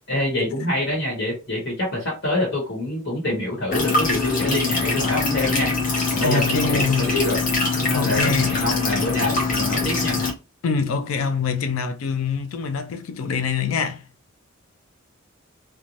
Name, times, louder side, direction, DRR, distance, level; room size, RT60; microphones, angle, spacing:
voice 1, 0.1-5.7 6.1-6.4 6.7-7.4 7.8-10.2, left 1 dB, 55° left, 1.2 m, -26 dB
sound 1, 3.7-10.3, left 3 dB, 40° left, 0.8 m, -23 dB
voice 2, 6.2-7.1 7.9-8.6 10.6-14.0, left 5 dB, 80° left, 0.4 m, -24 dB
2.6 x 2.3 x 3.0 m
head